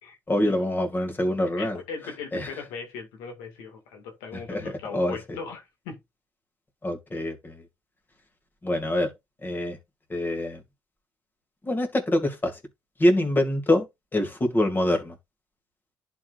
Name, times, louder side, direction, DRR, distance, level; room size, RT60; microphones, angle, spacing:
voice 1, 0.3-1.8 2.3-2.5 4.5-5.2 6.8-7.6 8.6-9.1 9.4-9.8 10.1-10.6 11.7-12.6 13.0-13.8 14.1-15.1, left 1 dB, 25° left, 2.7 m, -25 dB
voice 2, 1.6-6.0, left 5 dB, 85° left, 2.1 m, -39 dB
11.0 x 5.0 x 2.5 m
supercardioid pair, 75°, 8 cm